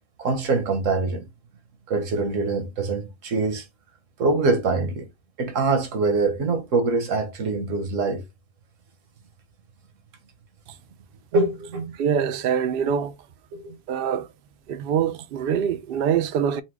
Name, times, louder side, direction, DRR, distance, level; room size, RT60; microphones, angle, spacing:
voice 1, 0.2-1.3 1.9-3.7 4.2-5.1 5.4-8.2 11.3-12.2 12.8-12.9 13.5-13.8 16.4-16.5, right 3 dB, 75° right, 1.3 m, -24 dB
voice 2, 12.0-13.1 13.9-14.3 14.7-16.6, right 8 dB, 60° right, 0.7 m, -24 dB
4.4 x 2.2 x 4.5 m
omnidirectional pair, 1.3 m